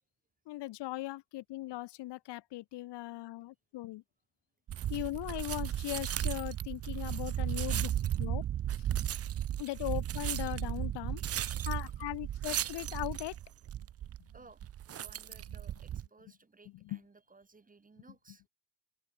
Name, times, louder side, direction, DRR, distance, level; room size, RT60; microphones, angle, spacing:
voice 1, 0.5-4.0 4.9-7.9 8.2-8.4 9.6-11.2 11.6-13.3 16.9-17.0, left 17 dB, 70° left, 1.4 m, -39 dB
sound 1, 4.7-16.1, right 11 dB, 35° right, 0.6 m, -35 dB
voice 2, 14.3-14.6 14.9-18.4, right 4 dB, 20° right, 3.4 m, -59 dB
cardioid pair, 115°, 43 cm